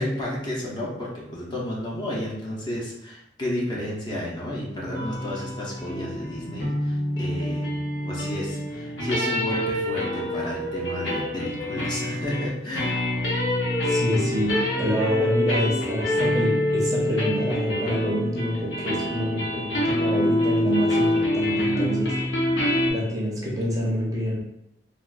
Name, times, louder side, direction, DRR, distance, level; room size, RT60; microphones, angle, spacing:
voice 1, 0.0-7.7 8.0-13.0, left 1 dB, 25° left, -4 dB, 0.6 m, -31 dB
sound 1, 4.8-22.9, left 1 dB, 80° left, 0.8 m, -26 dB
voice 2, 13.8-22.1 22.9-24.4, equal, 20° right, -4 dB, 0.6 m, -27 dB
3.3 x 2.4 x 2.5 m, 0.81 s
head